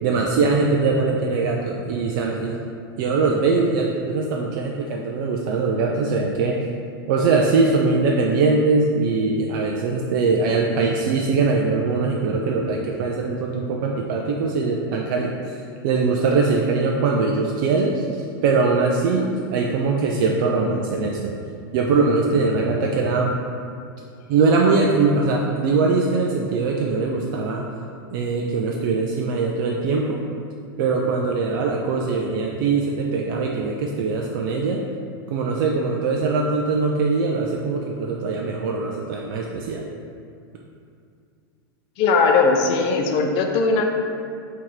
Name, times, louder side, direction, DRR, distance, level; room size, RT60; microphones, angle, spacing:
voice 1, 0.0-2.6 3.0-6.6 7.1-15.3 15.8-21.4 21.7-23.4 24.3-27.6 28.1-30.2 30.8-34.8 35.3-39.8, right 4 dB, 55° right, 0 dB, 0.4 m, -21 dB
voice 2, 42.0-43.8, left 4 dB, 45° left, 3 dB, 0.5 m, -19 dB
3.5 x 2.8 x 4.5 m, 2.3 s
hypercardioid pair, 95°, 13 cm